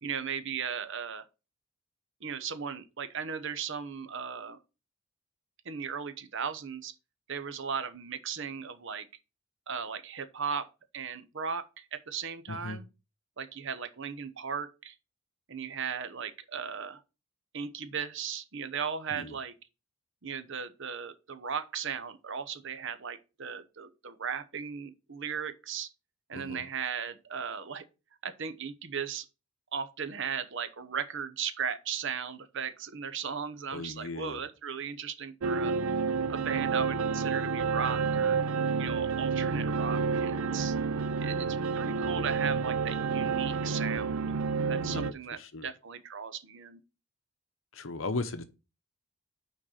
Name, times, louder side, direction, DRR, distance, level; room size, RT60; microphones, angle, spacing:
voice 1, 0.0-1.2 2.2-4.6 5.6-6.9 7.3-9.1 9.7-10.7 10.9-12.8 13.4-14.9 15.5-17.0 17.5-19.5 20.2-25.9 26.3-27.8 28.2-29.3 29.7-35.7 36.3-38.4 38.8-40.7 41.2-44.2 44.7-46.8, right 6 dB, 60° right, 0.9 m, -36 dB
voice 2, 12.5-12.8 19.1-19.4 26.3-26.6 33.7-34.4 44.8-45.7 47.7-48.4, left 3 dB, 65° left, 0.9 m, -37 dB
sound 1, 35.4-45.1, right 5 dB, 75° right, 0.5 m, -29 dB
6.2 x 4.5 x 6.5 m
head